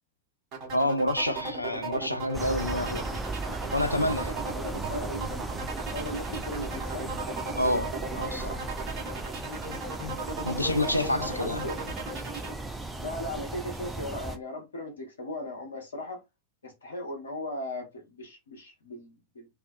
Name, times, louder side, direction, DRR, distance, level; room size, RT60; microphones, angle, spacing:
sound 1, 0.5-12.5, right 3 dB, 40° right, 1.1 m, -36 dB
voice 1, 0.7-3.2 3.7-4.4 7.6-8.6 10.4-11.6, left 1 dB, 85° left, 0.3 m, -28 dB
sound 2, 2.3-14.4, right 2 dB, 10° right, 0.4 m, -36 dB
voice 2, 4.6-5.3 5.9-7.1 11.2-11.8 13.0-16.2 16.6-19.5, left 1 dB, 70° left, 0.7 m, -37 dB
2.4 x 2.2 x 2.5 m
figure-of-eight pair, 90°, 0 cm